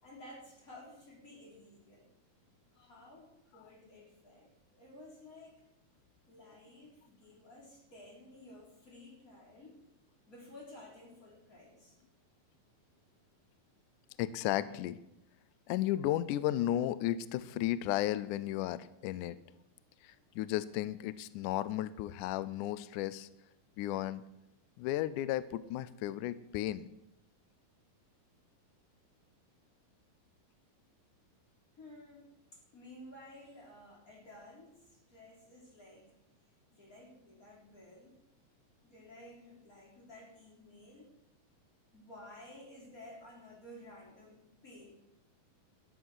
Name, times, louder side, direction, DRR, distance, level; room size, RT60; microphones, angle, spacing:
voice 1, 0.0-2.1 2.7-5.5 6.3-9.8 10.3-12.0 31.8-36.1 36.7-38.2 38.8-41.1 41.9-45.0, left 1 dB, 25° left, -3 dB, 4.0 m, -54 dB
voice 2, 14.2-15.0 15.7-19.4 20.0-23.3 23.8-24.2 24.8-26.9, left 13 dB, 80° left, 16 dB, 1.8 m, -34 dB
13.0 x 10.5 x 6.3 m, 0.86 s
omnidirectional pair, 4.2 m